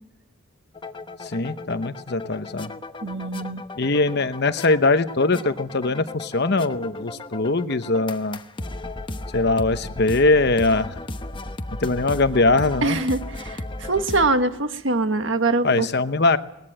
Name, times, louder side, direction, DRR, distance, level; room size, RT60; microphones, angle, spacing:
sound 1, 0.7-14.3, left 2 dB, 25° left, 1.0 m, -35 dB
voice 1, 1.2-2.7 3.8-8.4 9.3-10.9 11.8-13.0 15.6-16.4, left 3 dB, 50° left, 11 dB, 0.9 m, -21 dB
voice 2, 3.0-3.6 12.8-15.9, right 2 dB, 60° right, 8 dB, 1.6 m, -23 dB
22.0 x 19.5 x 8.8 m, 0.85 s
head